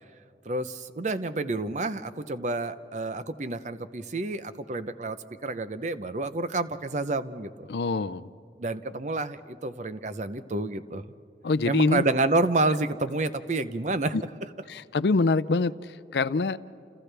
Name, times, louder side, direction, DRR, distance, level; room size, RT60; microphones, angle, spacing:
voice 1, 0.4-5.2 5.4-7.7 8.6-11.0 11.6-14.2, right 2 dB, 40° right, 12 dB, 0.7 m, -29 dB
voice 2, 7.7-8.3 11.4-12.0 14.1-14.2 14.7-16.6, left 3 dB, 70° left, 14 dB, 0.5 m, -25 dB
29.5 x 28.5 x 3.4 m, 2.6 s
head